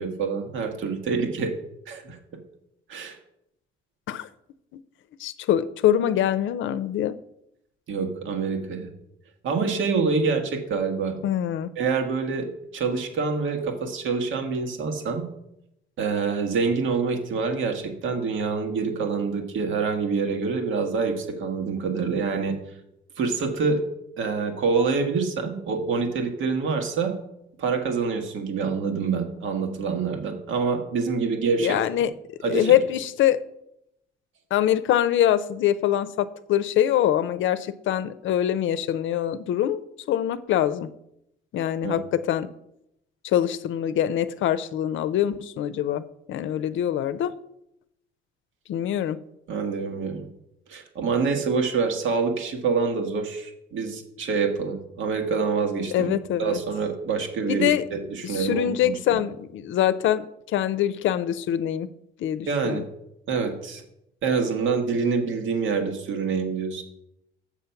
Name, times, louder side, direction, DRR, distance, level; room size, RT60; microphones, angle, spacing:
voice 1, 0.0-1.5 1.9-2.2 2.9-3.2 7.9-8.9 9.4-11.2 11.8-12.5 12.7-15.3 16.0-22.5 23.2-23.8 24.2-27.1 27.6-31.8 32.4-32.8 41.8-42.0 49.5-50.3 50.7-56.1 56.4-59.2 62.5-62.8 63.3-63.8 64.2-66.8, right 5 dB, 75° right, 5 dB, 1.6 m, -26 dB
voice 2, 5.2-7.2 11.2-11.7 31.6-32.1 32.4-33.4 34.5-39.8 40.1-40.9 41.5-42.5 43.2-47.3 48.7-49.2 55.9-56.6 57.5-57.8 58.2-61.9 62.2-62.8, left 11 dB, 75° left, 15 dB, 0.6 m, -24 dB
7.2 x 6.9 x 5.8 m, 0.81 s
cardioid pair, 90°, 20 cm